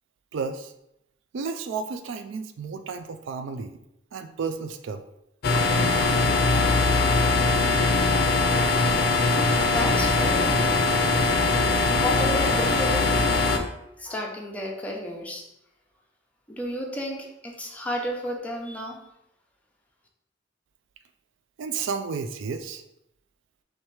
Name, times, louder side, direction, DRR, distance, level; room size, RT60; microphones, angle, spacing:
voice 1, 0.3-0.7 1.3-3.8 4.1-5.0 21.6-22.8, right 5 dB, 75° right, 8 dB, 0.4 m, -32 dB
sound 1, 5.4-13.6, left 3 dB, 55° left, 0.5 m, -21 dB
voice 2, 9.6-10.7 12.0-13.4 14.0-15.4 16.5-19.0, left 1 dB, 10° left, -2 dB, 0.7 m, -32 dB
3.2 x 3.2 x 4.7 m, 0.82 s
head